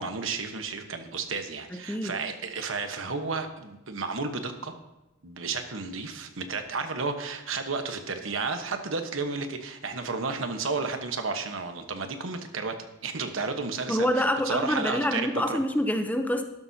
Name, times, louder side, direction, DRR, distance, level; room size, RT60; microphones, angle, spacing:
voice 1, 0.0-4.7 5.2-12.8 13.0-15.6, right 4 dB, 85° right, 6 dB, 1.2 m, -32 dB
voice 2, 13.9-16.4, equal, 10° left, 6 dB, 0.7 m, -26 dB
12.5 x 12.0 x 2.8 m, 0.98 s
head